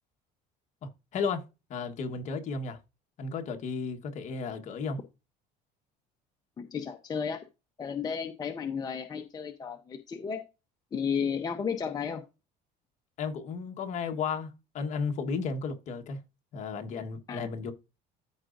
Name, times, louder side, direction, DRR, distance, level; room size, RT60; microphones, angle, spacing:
voice 1, 0.8-1.4 1.7-2.8 3.2-5.0 13.2-16.2 16.5-17.7, left 5 dB, 45° left, 1.4 m, -34 dB
voice 2, 6.6-7.4 7.8-10.4 10.9-12.2 17.3-17.5, left 6 dB, 25° left, 0.8 m, -33 dB
13.5 x 5.0 x 2.6 m
cardioid pair, 150°, 17 cm